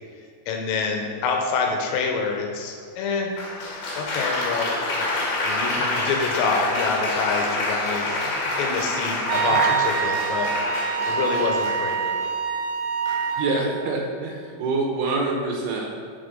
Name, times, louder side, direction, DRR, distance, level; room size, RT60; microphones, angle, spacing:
voice 1, 0.5-3.3 3.9-5.2 5.4-10.5 11.1-12.3, left 4 dB, 80° left, 2 dB, 2.9 m, -27 dB
Applause, 3.4-12.2 13.1-13.5, left 2 dB, 55° left, 2.7 m, -27 dB
Wind instrument woodwind instrument, 9.3-13.5, right 7 dB, 90° right, 3.1 m, -25 dB
voice 2, 13.4-15.9, right 3 dB, 75° right, 0 dB, 3.0 m, -25 dB
7.4 x 6.8 x 5.2 m, 2.3 s
omnidirectional pair, 5.4 m